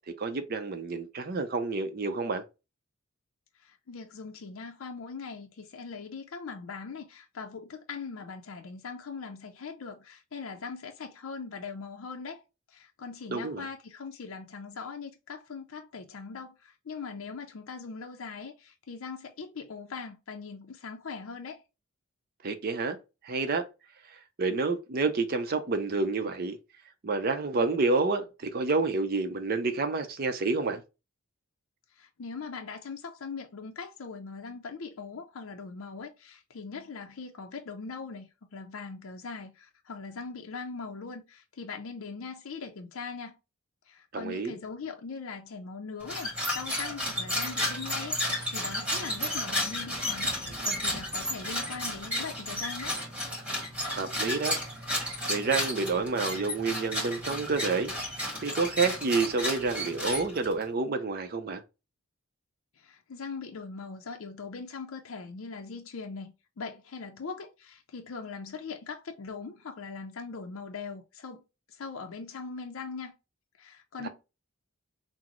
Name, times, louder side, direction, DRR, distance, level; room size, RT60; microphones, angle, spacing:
voice 1, 0.2-2.4 13.3-13.7 22.4-23.0 23.2-23.6 24.1-26.6 27.0-30.8 44.1-44.5 53.8-54.6 55.3-61.6 74.0-74.1, right 3 dB, 45° right, 0.5 m, -29 dB
voice 2, 3.5-12.4 12.7-21.6 31.9-43.4 43.9-53.0 62.8-71.4 71.7-73.1 73.6-74.1, left 4 dB, 70° left, 0.5 m, -41 dB
sound 1, 46.0-60.6, left 1 dB, 5° right, 1.5 m, -32 dB
5.9 x 2.0 x 3.0 m
head